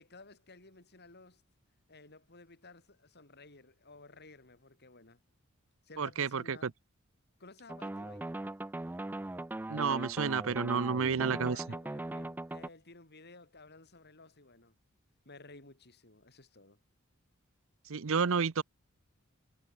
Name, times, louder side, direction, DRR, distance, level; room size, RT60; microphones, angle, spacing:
voice 1, 0.0-1.4 1.9-5.2 5.8-6.7 7.4-8.3 11.5-14.7 15.2-16.8, left 3 dB, 50° left, 7.5 m, -55 dB
voice 2, 6.0-6.6 9.7-11.6 17.9-18.6, right 5 dB, 70° right, 0.7 m, -30 dB
sound 1, 7.7-12.7, right 2 dB, 10° right, 0.3 m, -40 dB
head